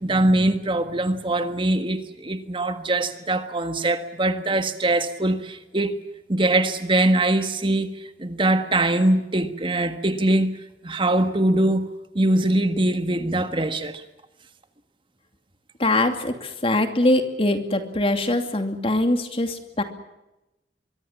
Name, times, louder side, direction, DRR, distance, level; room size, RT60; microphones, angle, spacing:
voice 1, 0.0-5.9 6.3-7.9 8.2-10.5 10.8-11.9 12.1-14.0, right 1 dB, 30° right, 1.6 m, -22 dB
voice 2, 15.8-19.8, left 1 dB, 30° left, 2.7 m, -22 dB
24.5 x 23.5 x 7.4 m
head